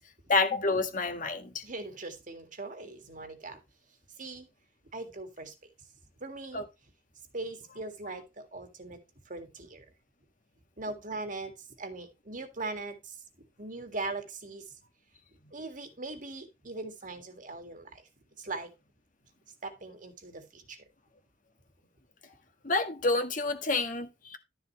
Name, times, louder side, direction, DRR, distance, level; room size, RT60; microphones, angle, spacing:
voice 1, 0.3-1.6 6.5-6.6 22.6-24.4, left 3 dB, 50° left, 1.7 m, -28 dB
voice 2, 1.6-3.6 4.2-4.5 4.9-5.5 6.2-6.7 7.3-9.9 10.8-13.2 13.6-14.7 15.5-18.1 18.4-18.7 19.6-20.9, right 3 dB, 50° right, 2.0 m, -40 dB
12.0 x 6.8 x 3.1 m
head